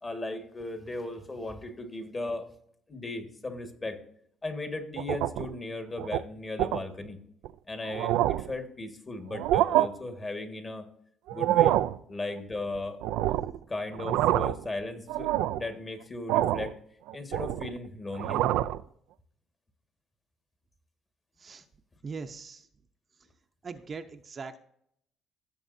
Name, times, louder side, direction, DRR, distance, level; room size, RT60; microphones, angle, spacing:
voice 1, 0.0-2.5 2.9-4.0 4.4-7.2 7.7-10.9 11.3-11.8 12.1-13.0 13.7-16.7 17.1-18.4, left 2 dB, 25° left, 6 dB, 1.7 m, -37 dB
sound 1, 5.0-5.5 6.0-6.2 6.6-6.8 7.4-7.5 7.9-8.5 9.3-9.9 11.3-12.0 13.0-13.6 13.9-14.7 15.1-15.7 16.3-16.7 17.1-17.8 18.1-18.8, right 14 dB, 85° right, 0.3 m, -26 dB
voice 2, 13.3-13.7 21.4-21.7 22.0-22.7 23.1-23.3 23.6-24.6, right 5 dB, 35° right, 6 dB, 0.7 m, -42 dB
16.0 x 7.0 x 2.7 m, 0.69 s
cardioid pair, 105°, 0 cm